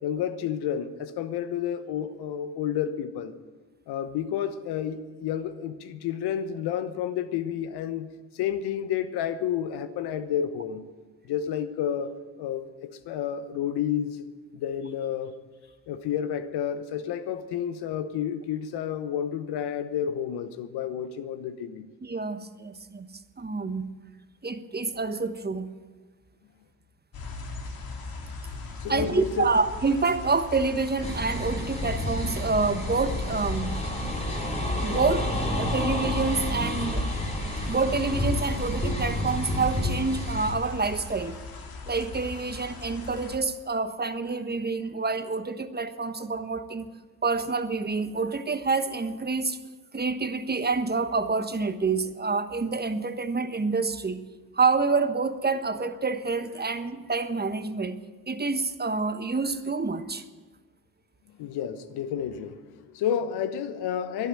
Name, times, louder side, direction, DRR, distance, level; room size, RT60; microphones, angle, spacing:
voice 1, 0.0-3.3 3.9-8.1 8.3-10.9 11.2-14.3 14.5-15.3 15.9-21.9 28.8-29.5 61.3-64.3, left 9 dB, 80° left, 1.1 m, -30 dB
voice 2, 22.0-23.1 23.4-23.9 24.4-25.7 28.9-33.7 34.8-35.3 35.6-37.1 37.7-41.4 41.9-46.9 47.2-49.6 49.9-54.2 54.5-58.0 58.3-60.2, right 4 dB, 25° right, 1.3 m, -27 dB
sound 1, 27.1-43.4, left 3 dB, 65° left, 2.3 m, -39 dB
sound 2, 31.0-40.5, left 1 dB, 15° left, 4.5 m, -30 dB
11.5 x 11.0 x 9.1 m
hypercardioid pair, 45°, 39 cm